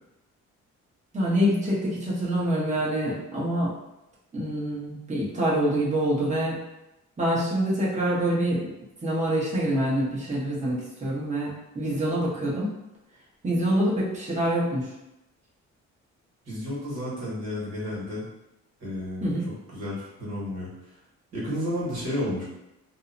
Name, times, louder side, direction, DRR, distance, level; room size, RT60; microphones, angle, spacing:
voice 1, 1.1-3.7 4.3-6.5 7.2-8.6 9.0-12.7 13.4-14.9 19.2-19.4, right 1 dB, 25° right, -7 dB, 1.0 m, -26 dB
voice 2, 16.4-18.2 18.8-19.3 19.7-20.7 21.3-22.4, left 1 dB, 60° right, -7 dB, 1.4 m, -31 dB
2.7 x 2.1 x 2.6 m, 0.91 s
cardioid pair, 90°, 30 cm